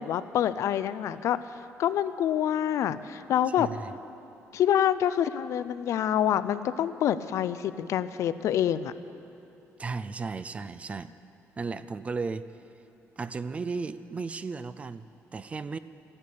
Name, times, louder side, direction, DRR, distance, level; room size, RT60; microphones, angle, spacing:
voice 1, 0.0-1.4 1.8-3.7 4.5-8.9, left 10 dB, 70° left, 14 dB, 0.5 m, -26 dB
voice 2, 3.6-3.9 9.8-11.1 11.6-12.4 13.2-15.8, right 4 dB, 25° right, 14 dB, 0.4 m, -35 dB
14.5 x 11.0 x 8.5 m, 2.7 s
cardioid pair, 155°, 5 cm